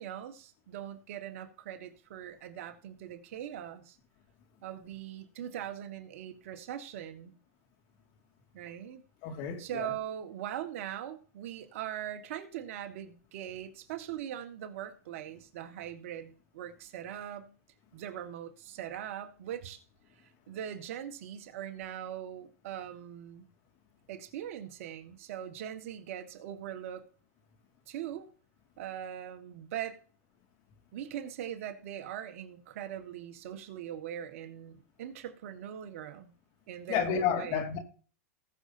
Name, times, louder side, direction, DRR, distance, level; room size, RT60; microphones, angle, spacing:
voice 1, 0.0-4.0 4.6-7.3 8.5-9.0 9.6-17.5 17.9-19.8 20.5-23.5 24.1-27.0 27.9-28.3 28.8-30.0 30.9-36.3 36.7-37.6, right 10 dB, 65° right, 1.7 m, -41 dB
voice 2, 9.2-9.9 36.9-37.8, left 8 dB, 50° left, 2.2 m, -31 dB
19.5 x 6.6 x 2.8 m
hypercardioid pair, 130°, 8 cm